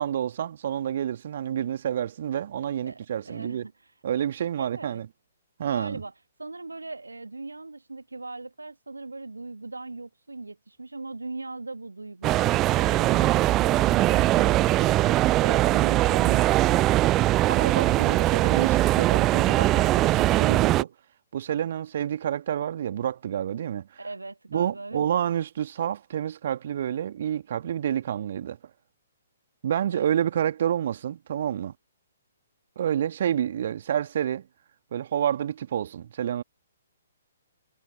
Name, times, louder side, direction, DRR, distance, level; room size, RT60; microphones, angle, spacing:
voice 1, 0.0-3.7 4.0-5.1 5.6-6.0 15.6-16.0 17.5-20.9 21.3-23.9 24.5-28.6 29.6-31.7 32.8-34.5 34.9-36.4, right 9 dB, 50° right, 2.0 m, -29 dB
voice 2, 2.8-3.7 4.6-5.0 5.6-6.1 6.4-17.4 24.0-25.0 29.9-30.2, right 3 dB, 75° right, 1.7 m, -39 dB
sound 1, 12.2-20.8, right 16 dB, 20° right, 0.4 m, -21 dB
figure-of-eight pair, 125°, 0 cm